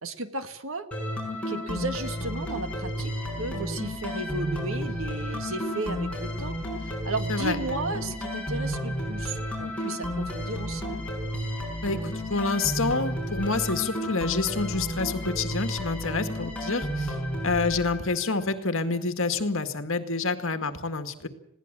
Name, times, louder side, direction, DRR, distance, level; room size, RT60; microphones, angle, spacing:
voice 1, 0.0-0.9 1.5-3.1 3.4-11.0, right 2 dB, 60° right, 9 dB, 1.9 m, -34 dB
sound 1, 0.9-18.4, equal, 5° left, 5.8 m, -32 dB
voice 2, 11.8-17.2 17.4-21.3, left 3 dB, 60° left, 8 dB, 2.0 m, -28 dB
21.0 x 17.0 x 7.6 m, 0.82 s
head